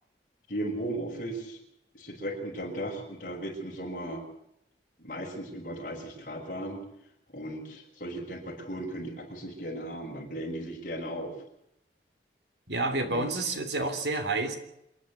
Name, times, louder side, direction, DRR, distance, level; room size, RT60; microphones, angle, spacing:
voice 1, 0.5-1.6 1.9-4.2 5.0-6.8 7.3-11.3 13.0-13.3, right 1 dB, 45° left, 0 dB, 5.8 m, -36 dB
voice 2, 12.7-14.6, right 2 dB, 75° right, 8 dB, 3.2 m, -29 dB
26.5 x 10.5 x 9.6 m, 0.80 s
head